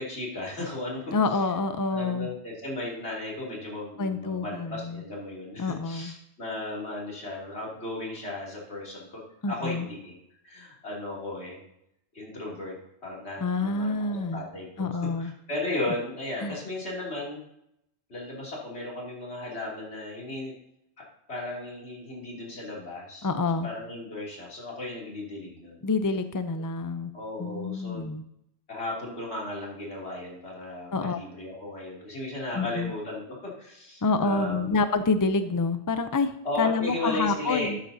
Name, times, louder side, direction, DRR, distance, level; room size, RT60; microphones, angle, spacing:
voice 1, 0.0-1.4 1.9-9.2 9.5-10.1 10.4-11.6 12.1-12.7 13.0-14.0 14.3-17.4 18.1-20.5 21.0-23.3 23.6-25.8 26.5-26.6 27.1-28.0 28.7-34.8 36.4-37.8, left 2 dB, 75° left, -4 dB, 3.1 m, -35 dB
voice 2, 1.1-2.3 4.0-5.0 5.6-6.1 9.4-9.9 13.4-14.4 14.8-15.3 16.4-16.6 23.2-23.7 25.8-27.1 27.4-28.2 30.9-31.2 32.5-32.9 34.0-36.3 36.6-37.8, left 3 dB, 30° left, 10 dB, 0.4 m, -27 dB
12.5 x 9.1 x 2.7 m, 0.79 s
omnidirectional pair, 1.1 m